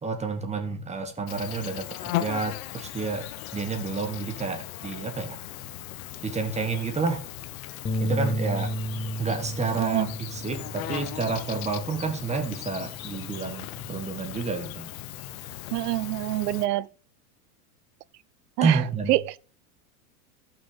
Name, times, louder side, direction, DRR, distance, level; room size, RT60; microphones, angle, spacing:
voice 1, 0.0-3.2 3.5-5.4 6.2-7.2 8.0-8.7 9.2-14.9 18.6-19.1, right 4 dB, 15° right, 1.5 m, -29 dB
Insect, 1.3-16.7, left 14 dB, 60° left, 0.9 m, -37 dB
Bass guitar, 7.8-12.3 12.7-14.1, right 1 dB, 15° left, 0.6 m, -33 dB
voice 2, 9.8-10.1 15.7-16.9 18.6-18.8 19.1-19.4, right 17 dB, 75° right, 0.6 m, -26 dB
14.0 x 6.0 x 3.9 m
supercardioid pair, 125°, 48 cm